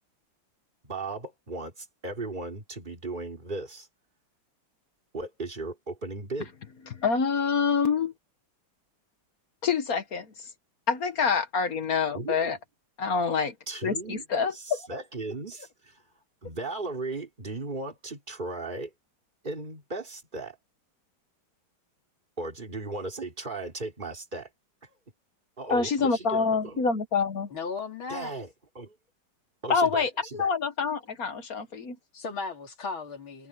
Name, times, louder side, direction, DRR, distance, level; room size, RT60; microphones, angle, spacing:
voice 1, 0.8-3.9 5.1-6.5 12.1-12.6 13.7-14.2 14.5-16.0 16.4-18.9 19.4-20.6 22.4-24.5 24.8-24.9 25.6-26.8 28.1-29.0 29.6-30.5, right 3 dB, 25° right, 3.3 m, -36 dB
voice 2, 6.9-8.1 9.6-10.3 10.9-12.6 13.0-13.5 13.8-15.0 25.7-27.5 29.7-31.9, left 5 dB, 50° left, 1.5 m, -26 dB
voice 3, 27.5-28.3 32.1-33.5, left 4 dB, 75° left, 3.8 m, -36 dB
omnidirectional pair, 2.2 m